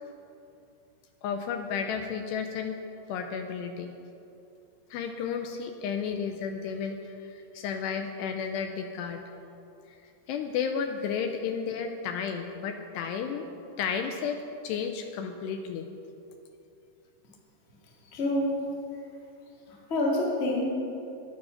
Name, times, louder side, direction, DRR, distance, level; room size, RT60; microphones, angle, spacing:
voice 1, 1.2-2.8 3.1-3.9 4.9-9.2 9.9-10.0 10.3-13.5 13.8-15.9, left 6 dB, 80° left, 5 dB, 2.6 m, -32 dB
voice 2, 18.1-18.6 19.9-20.6, left 1 dB, 30° left, -3 dB, 1.3 m, -26 dB
15.0 x 10.5 x 5.8 m, 2.8 s
omnidirectional pair, 5.3 m